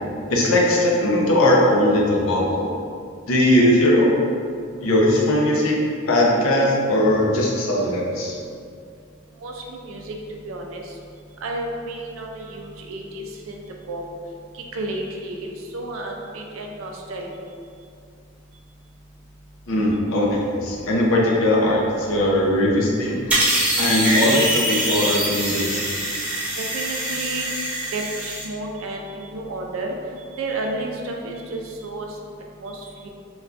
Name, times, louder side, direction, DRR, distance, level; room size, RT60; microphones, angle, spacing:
voice 1, 0.3-2.7 3.3-4.2 4.8-8.4 19.7-23.5 23.8-25.8, left 1 dB, 90° left, -3 dB, 0.6 m, -19 dB
voice 2, 9.4-11.0 11.4-13.6 13.9-14.0 14.5-17.3 26.5-27.4 27.9-30.0 30.3-32.2 32.6-33.1, right 2 dB, 80° right, 1 dB, 0.4 m, -32 dB
sound 1, 23.3-28.4, right 1 dB, 5° right, 0.4 m, -23 dB
3.4 x 2.3 x 2.4 m, 2.3 s
head